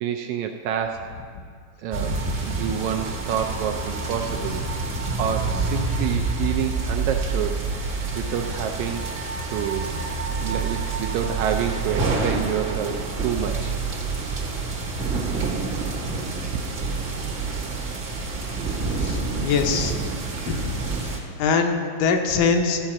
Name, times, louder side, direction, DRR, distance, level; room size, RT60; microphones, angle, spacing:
voice 1, 0.0-1.1 1.8-4.6 5.2-7.6 8.2-9.1 9.5-10.0 10.4-13.8, right 8 dB, 80° right, 5 dB, 1.7 m, -28 dB
sound 1, 1.9-21.2, right 3 dB, 50° right, 1.2 m, -27 dB
voice 2, 19.0-19.9 20.5-20.8 21.4-22.8, left 5 dB, 80° left, 4 dB, 2.4 m, -23 dB
14.0 x 5.2 x 7.3 m, 2.3 s
omnidirectional pair, 3.7 m